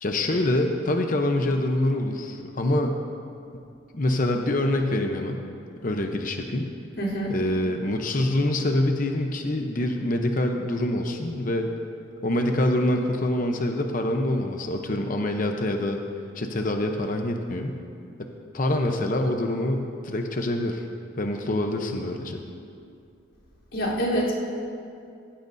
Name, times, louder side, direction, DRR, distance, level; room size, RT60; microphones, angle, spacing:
voice 1, 0.0-3.0 3.9-5.4 5.8-6.7 7.3-11.7 12.2-16.0 16.3-17.8 18.2-18.3 18.5-20.9 21.2-22.4, left 1 dB, 45° left, 4 dB, 0.8 m, -25 dB
voice 2, 7.0-7.3 23.7-24.3, equal, 70° left, -7 dB, 3.6 m, -26 dB
17.0 x 15.5 x 2.7 m, 2.5 s
head